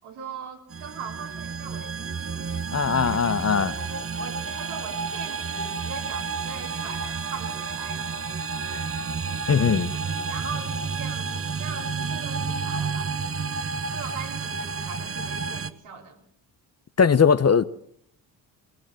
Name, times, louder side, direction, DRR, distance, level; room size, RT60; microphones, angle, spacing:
voice 1, 0.0-2.6 3.1-8.1 9.5-9.8 10.3-13.2 13.9-16.2, right 6 dB, 75° right, 3.9 m, -41 dB
sound 1, 0.7-15.7, right 5 dB, 30° right, 1.0 m, -31 dB
voice 2, 2.7-3.7 8.7-8.8 9.5-9.9 17.0-17.6, left 6 dB, 30° left, 0.9 m, -20 dB
21.0 x 17.0 x 7.6 m
hypercardioid pair, 50°, 48 cm